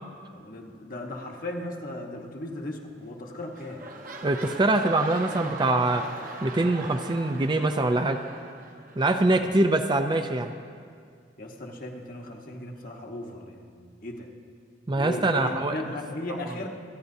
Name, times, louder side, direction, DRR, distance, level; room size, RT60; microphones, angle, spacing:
voice 1, 0.3-3.9 9.4-9.6 11.4-14.3 14.9-16.7, left 1 dB, 50° left, 1 dB, 1.2 m, -37 dB
sound 1, 3.0-3.2 3.5-9.3 10.0-10.1, right 3 dB, 50° right, 1.1 m, -40 dB
voice 2, 4.2-6.1 6.4-8.2 9.0-10.5 14.9-15.8, right 2 dB, 25° right, 6 dB, 0.4 m, -24 dB
26.5 x 10.5 x 2.7 m, 2.1 s
head